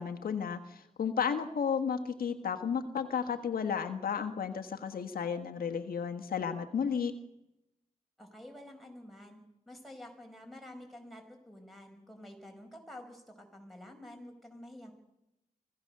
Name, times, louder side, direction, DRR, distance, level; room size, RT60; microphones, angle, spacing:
voice 1, 0.0-7.1, left 7 dB, 90° left, 7 dB, 1.4 m, -33 dB
voice 2, 8.2-9.4 9.7-14.9, left 1 dB, ahead, 1 dB, 5.4 m, -49 dB
25.0 x 16.0 x 6.7 m, 0.87 s
wide cardioid pair, 90°, 15 cm